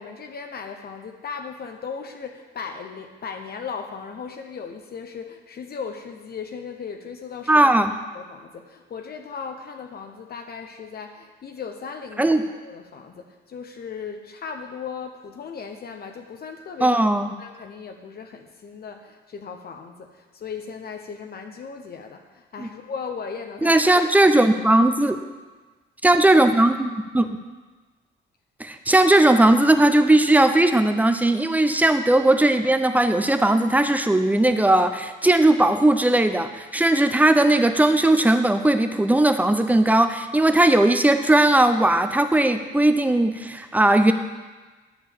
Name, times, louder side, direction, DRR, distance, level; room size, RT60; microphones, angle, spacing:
voice 1, 0.0-7.7 8.1-23.9, left 6 dB, 50° left, 5 dB, 0.9 m, -37 dB
voice 2, 7.5-7.9 12.2-12.4 16.8-17.3 22.6-22.7 23.6-25.2 26.0-27.4 28.6-44.1, right 1 dB, 10° right, 8 dB, 0.7 m, -18 dB
10.0 x 4.6 x 7.1 m, 1.3 s
cardioid pair, 90°, 20 cm